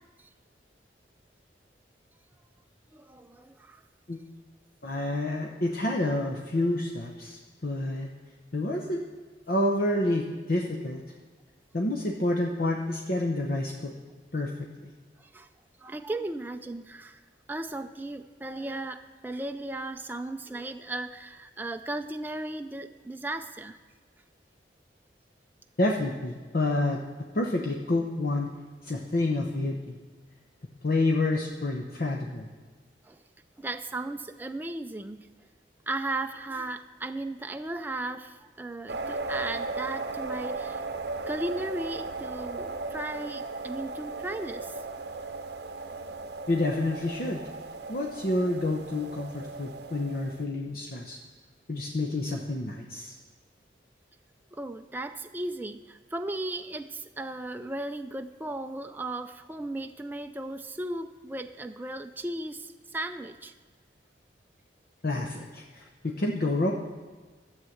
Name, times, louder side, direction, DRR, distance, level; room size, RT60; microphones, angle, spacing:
voice 1, 2.9-3.8 15.2-15.5 15.8-17.2 17.5-23.8 33.0-33.2 33.6-35.3 35.9-40.8 41.3-44.8 48.0-48.1 54.5-63.5, right 2 dB, 10° right, 6 dB, 0.4 m, -36 dB
voice 2, 4.8-8.1 8.5-9.0 9.5-11.0 11.7-13.9 14.3-14.5 14.8-14.9 25.8-27.0 27.3-28.5 28.8-29.9 30.8-32.5 46.5-47.4 47.9-51.2 51.7-53.1 65.0-66.7, left 2 dB, 55° left, 0 dB, 0.9 m, -28 dB
sound 1, 38.9-50.5, right 3 dB, 60° right, 0.7 m, -37 dB
13.0 x 7.4 x 7.8 m, 1.4 s
head